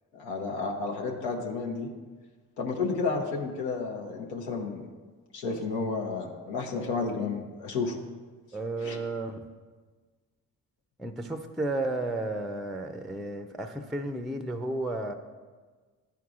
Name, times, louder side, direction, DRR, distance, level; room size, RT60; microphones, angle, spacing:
voice 1, 0.1-1.9 2.6-4.9 5.3-8.0 8.8-9.0, left 4 dB, 90° left, 0 dB, 0.8 m, -31 dB
voice 2, 8.5-9.4 11.0-15.1, right 2 dB, ahead, 7 dB, 0.4 m, -33 dB
10.5 x 4.6 x 2.4 m, 1.4 s
hypercardioid pair, 40°, 42 cm